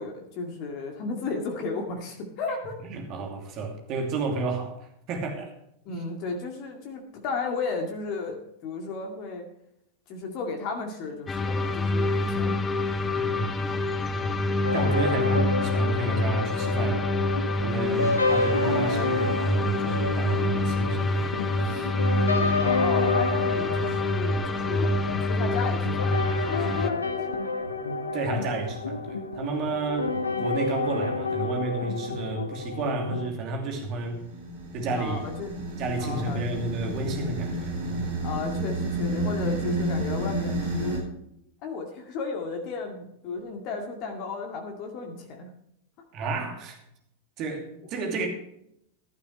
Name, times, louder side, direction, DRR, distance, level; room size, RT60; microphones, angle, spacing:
voice 1, 0.0-2.8 5.9-9.4 10.1-12.6 22.6-24.9 25.3-27.1 34.9-35.5 36.0-36.5 38.2-41.1 41.6-45.5, left 4 dB, 40° left, 2.2 m, -34 dB
voice 2, 2.9-5.6 5.9-6.0 13.1-13.8 14.1-14.4 14.7-21.9 27.8-34.2 34.7-35.3 35.8-38.2 46.1-46.8 47.4-48.3, right 3 dB, 40° right, 2.7 m, -32 dB
sound 1, 11.3-26.9, left 2 dB, 20° left, 1.0 m, -26 dB
sound 2, 14.6-33.3, left 3 dB, 75° left, 1.2 m, -29 dB
sound 3, 33.9-41.0, right 1 dB, 55° right, 4.8 m, -30 dB
16.0 x 12.0 x 3.2 m
figure-of-eight pair, 90°, 0 cm